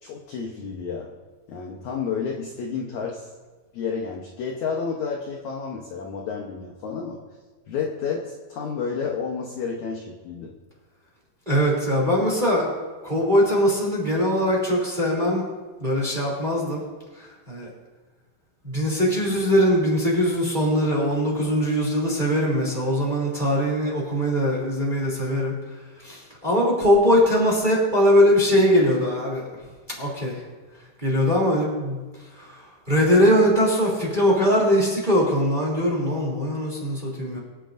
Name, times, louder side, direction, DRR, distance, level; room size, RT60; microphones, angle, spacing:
voice 1, 0.0-1.1 1.5-3.3 3.7-7.2 7.7-10.5, left 6 dB, 70° left, 0 dB, 1.9 m, -30 dB
voice 2, 11.5-12.7 13.0-15.4 15.8-16.8 17.2-17.7 18.6-25.5 26.0-29.4 30.0-30.4 31.0-32.0 32.3-32.6 32.9-37.4, equal, 15° right, -3 dB, 2.4 m, -21 dB
25.0 x 9.3 x 2.6 m, 1.3 s
omnidirectional pair, 4.4 m